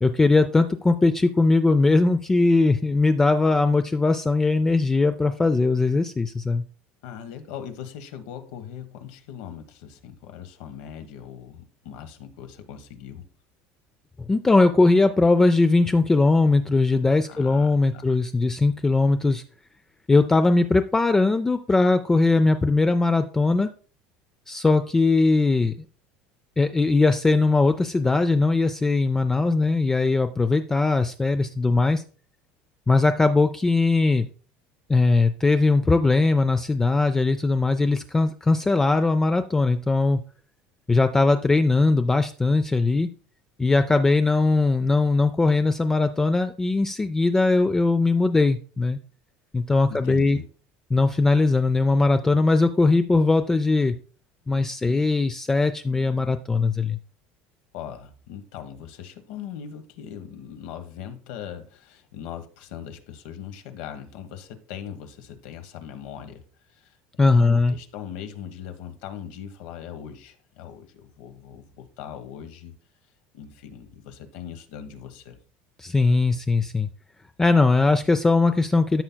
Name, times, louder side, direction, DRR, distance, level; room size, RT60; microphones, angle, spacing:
voice 1, 0.0-6.6 14.3-19.4 20.1-23.7 24.5-25.7 26.6-32.0 32.9-34.3 34.9-40.2 40.9-43.1 43.6-49.0 49.5-50.4 50.9-54.0 54.5-57.0 67.2-67.7 75.8-76.9 77.4-79.0, left 3 dB, 10° left, 9 dB, 0.4 m, -20 dB
voice 2, 7.0-13.2 17.3-18.2 49.9-50.5 57.7-72.7 73.3-75.4, left 9 dB, 80° left, 8 dB, 1.2 m, -40 dB
13.0 x 5.7 x 2.2 m, 0.39 s
cardioid pair, 140°, 4 cm